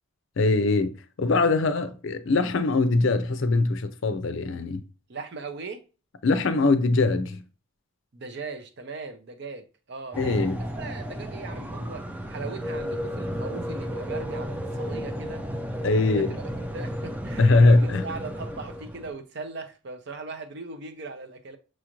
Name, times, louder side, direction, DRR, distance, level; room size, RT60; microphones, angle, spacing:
voice 1, 0.4-4.8 6.2-7.4 10.2-10.6 15.8-16.4 17.4-18.1, left 3 dB, 55° left, 0.5 m, -22 dB
voice 2, 5.1-5.8 8.1-10.4 10.7-15.4 16.2-21.6, right 4 dB, 50° right, 0.6 m, -39 dB
sound 1, 10.1-19.1, equal, 5° right, 0.4 m, -33 dB
6.2 x 2.5 x 3.0 m
head